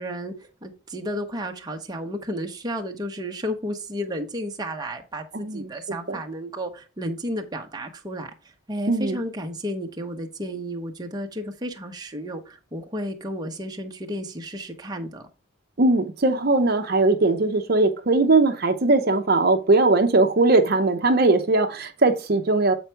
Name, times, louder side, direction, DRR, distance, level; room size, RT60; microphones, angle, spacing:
voice 1, 0.0-8.3 8.7-15.2, equal, 20° right, 0.9 m, -32 dB
voice 2, 5.3-5.7 6.1-6.2 8.9-9.2 15.8-22.7, right 2 dB, 50° right, 0.7 m, -20 dB
8.0 x 4.5 x 4.5 m
head